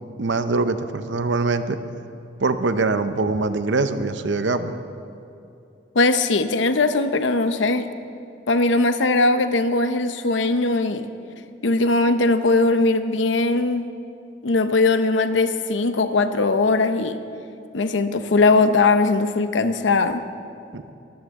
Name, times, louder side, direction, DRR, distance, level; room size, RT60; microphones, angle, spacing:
voice 1, 0.2-1.8 2.4-4.8 20.7-20.8, right 3 dB, 70° right, 10 dB, 0.8 m, -23 dB
voice 2, 5.9-7.8 8.5-11.1 11.6-13.9 14.4-17.2 17.7-20.2, left 3 dB, 75° left, 10 dB, 0.8 m, -20 dB
22.5 x 13.5 x 3.7 m, 2.7 s
head